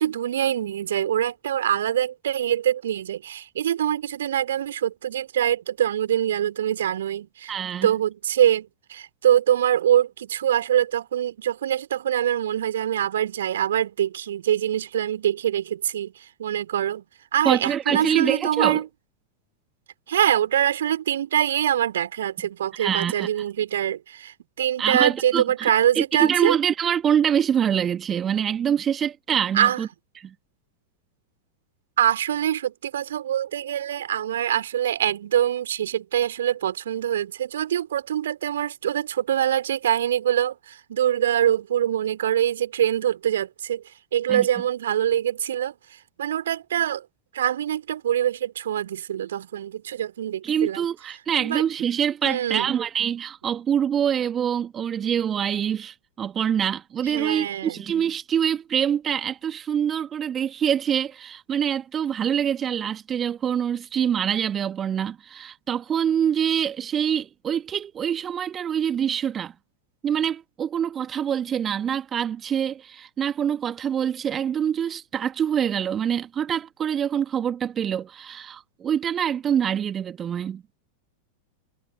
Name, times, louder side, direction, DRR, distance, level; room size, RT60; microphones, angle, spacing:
voice 1, 0.0-7.5 7.8-17.0 17.3-18.9 20.1-26.5 29.5-29.8 32.0-43.8 44.1-45.7 46.2-47.1 47.3-50.9 51.4-51.6 52.2-52.7 57.0-57.8, right 10 dB, 60° right, 3.0 m, -24 dB
voice 2, 7.5-7.9 17.4-18.8 22.8-23.3 24.8-25.7 26.0-29.9 30.2-30.3 44.3-44.5 50.4-69.5 70.0-80.6, right 8 dB, 25° right, 1.8 m, -25 dB
figure-of-eight pair, 90°, 0 cm